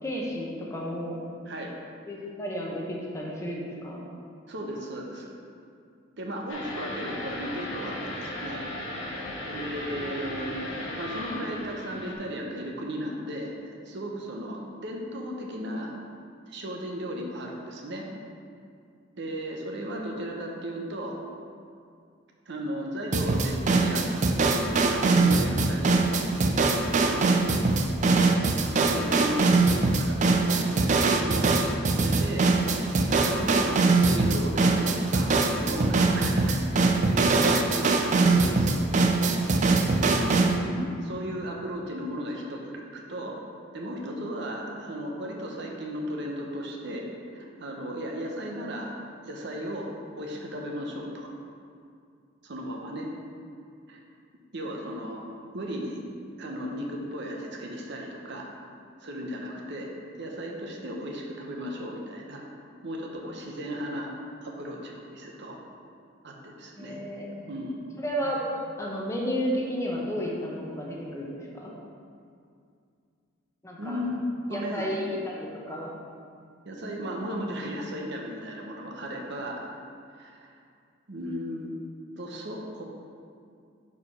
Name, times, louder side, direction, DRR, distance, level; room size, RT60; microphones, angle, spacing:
voice 1, 0.0-1.2 2.1-4.0 19.9-20.1 40.1-40.6 66.7-67.5 68.0-71.7 73.6-74.0 74.5-75.9, equal, 15° left, -3 dB, 0.9 m, -32 dB
voice 2, 4.5-5.4 6.2-8.7 9.5-13.6 13.9-15.9 16.5-18.1 19.2-21.2 22.5-24.1 24.7-26.0 27.0-28.3 28.9-31.5 32.0-32.5 33.0-33.8 34.1-36.6 36.9-37.2 37.8-38.9 40.6-43.3 43.7-47.1 47.3-48.9 49.2-49.9 50.2-51.3 52.4-53.1 53.9-54.0 54.5-55.2 55.5-56.0 56.4-58.5 59.0-59.9 60.2-62.4 62.8-64.1 64.4-65.6 66.2-67.1 67.4-67.8 73.8-74.2 74.5-74.9 76.6-79.6 80.1-80.5 81.1-81.7 82.2-82.8, equal, 60° right, 0 dB, 0.8 m, -35 dB
sound 1, 6.5-12.1, left 1 dB, 80° left, 1.1 m, -36 dB
sound 2, 23.1-40.6, right 3 dB, 40° right, 0.4 m, -22 dB
4.9 x 4.7 x 5.4 m, 2.3 s
head